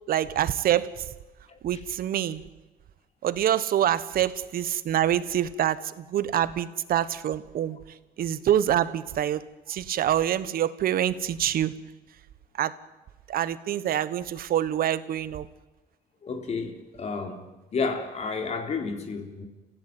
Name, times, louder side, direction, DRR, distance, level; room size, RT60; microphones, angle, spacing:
voice 1, 0.1-1.0 1.6-2.4 3.2-5.8 6.1-7.8 8.2-9.4 9.7-11.7 12.6-12.7 13.3-15.5, right 11 dB, 60° right, 1.4 m, -26 dB
voice 2, 1.5-1.8 16.2-17.4 17.7-19.5, left 4 dB, 40° left, 3.7 m, -31 dB
29.5 x 16.0 x 9.5 m
cardioid pair, 110°, 17 cm